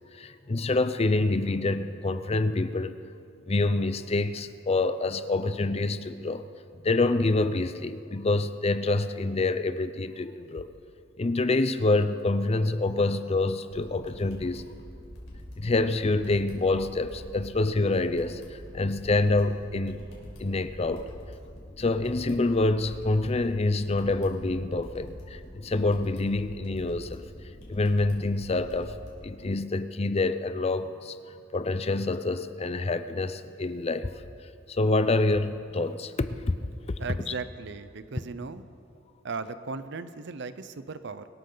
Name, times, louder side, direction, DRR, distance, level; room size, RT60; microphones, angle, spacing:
voice 1, 0.1-3.0 3.5-6.4 6.8-10.7 11.2-14.6 15.6-20.0 20.4-21.1 21.8-27.3 27.7-29.0 29.2-31.2 31.5-34.1 34.7-36.6, left 2 dB, 35° left, 12 dB, 0.5 m, -26 dB
sound 1, 13.7-29.1, equal, 90° left, 4.4 m, -45 dB
voice 2, 37.0-38.6 39.2-41.3, right 4 dB, 65° right, 13 dB, 0.7 m, -37 dB
23.5 x 13.0 x 3.9 m, 2.5 s
head